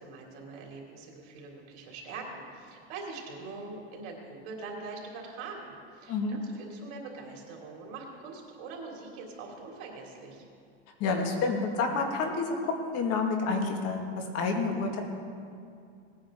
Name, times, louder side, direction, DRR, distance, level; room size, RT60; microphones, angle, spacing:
voice 1, 0.0-4.2 4.4-10.4, right 3 dB, 60° right, -1 dB, 3.1 m, -43 dB
voice 2, 6.1-6.4 11.0-12.5 12.8-15.0, left 4 dB, 50° left, 3 dB, 2.0 m, -29 dB
19.0 x 9.3 x 3.8 m, 2.4 s
supercardioid pair, 125°, 32 cm